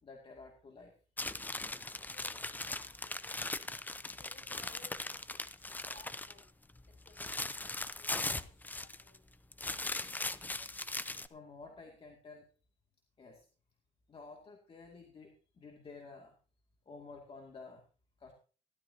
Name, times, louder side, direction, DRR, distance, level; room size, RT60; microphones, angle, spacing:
voice 1, 0.0-0.9 11.3-12.5 13.2-13.5 14.1-16.3 16.9-17.8 18.2-18.3, left 4 dB, 35° left, 1 dB, 2.4 m, -52 dB
sound 1, 1.2-6.4 6.8-9.2 9.5-11.3, left 2 dB, 10° left, 0.6 m, -39 dB
voice 2, 2.1-3.7 4.2-6.5 6.9-7.5 8.0-9.2, left 3 dB, 50° left, 2 dB, 5.8 m, -61 dB
16.5 x 12.5 x 2.8 m, 0.38 s
cardioid pair, 110°, 17 cm